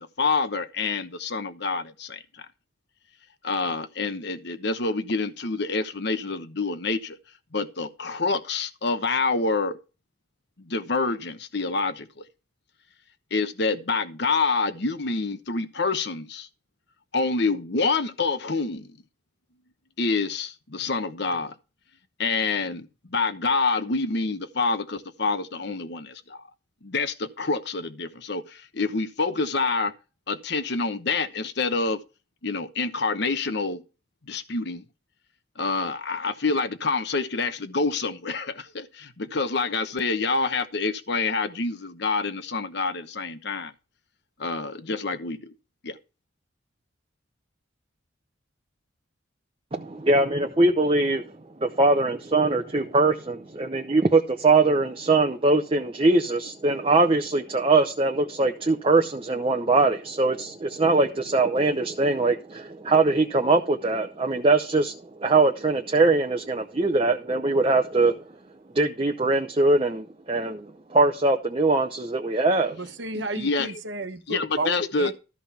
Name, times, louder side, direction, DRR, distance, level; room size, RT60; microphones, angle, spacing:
voice 1, 0.0-2.2 3.4-7.2 7.5-9.8 10.7-12.2 13.3-16.5 17.1-19.0 20.0-21.5 22.2-26.4 26.8-29.9 30.3-32.0 32.4-33.8 34.3-34.8 35.6-43.7 44.4-45.5 45.8-46.0 73.1-73.8 74.3-75.1, left 3 dB, 55° left, 1.0 m, -27 dB
voice 2, 49.7-51.2 51.6-68.2 68.7-72.8, right 3 dB, 30° right, 0.8 m, -22 dB
voice 3, 72.7-75.1, right 2 dB, 60° right, 1.3 m, -32 dB
13.5 x 5.2 x 5.8 m
head